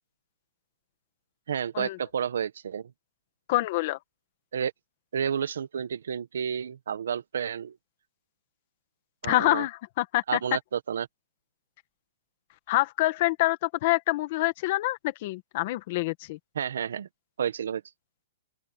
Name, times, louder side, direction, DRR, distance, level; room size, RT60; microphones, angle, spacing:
voice 1, 1.5-2.9 4.5-4.7 5.1-7.8 9.2-9.6 10.3-11.1 16.5-17.1 17.4-17.8, right 8 dB, 75° right, 1.4 m, -30 dB
voice 2, 3.5-4.0 9.2-10.4 12.7-16.4, left 18 dB, 40° left, 1.6 m, -26 dB
open air
hypercardioid pair, 165°, 0 cm